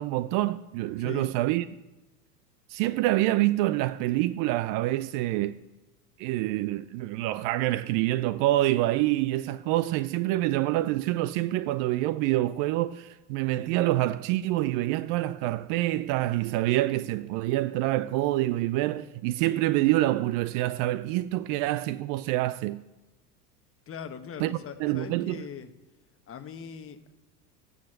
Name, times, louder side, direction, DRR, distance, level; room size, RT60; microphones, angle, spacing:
voice 1, 0.0-1.7 2.7-5.5 6.2-22.8 24.4-25.4, right 16 dB, 45° right, 0.4 m, -26 dB
voice 2, 1.0-1.3 23.9-25.7 26.3-27.1, left 7 dB, 30° left, 1.1 m, -41 dB
9.5 x 6.5 x 6.5 m
hypercardioid pair, 85°, 47 cm